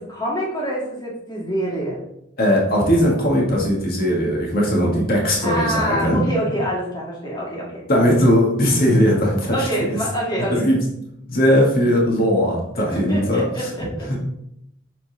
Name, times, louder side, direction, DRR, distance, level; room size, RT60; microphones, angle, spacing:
voice 1, 0.0-2.0 5.4-7.8 9.5-10.7 12.8-14.1, right 1 dB, 20° left, -4 dB, 2.2 m, -26 dB
voice 2, 2.4-6.2 7.9-10.0 10.5-10.8 11.3-13.4, equal, 50° left, -2 dB, 1.6 m, -18 dB
7.6 x 4.0 x 3.9 m, 0.79 s
head